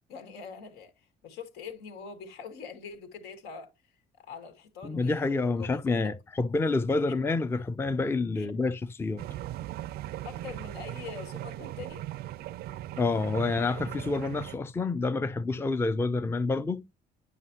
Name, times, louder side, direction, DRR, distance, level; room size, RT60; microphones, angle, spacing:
voice 1, 0.1-6.1 6.9-7.2 8.3-8.5 10.2-12.0, left 6 dB, 85° left, 2.2 m, -44 dB
voice 2, 4.8-9.2 13.0-16.9, left 3 dB, 15° left, 0.5 m, -28 dB
sound 1, 9.2-14.5, right 14 dB, 70° right, 0.4 m, -39 dB
9.5 x 5.6 x 2.8 m
cardioid pair, 110°, 17 cm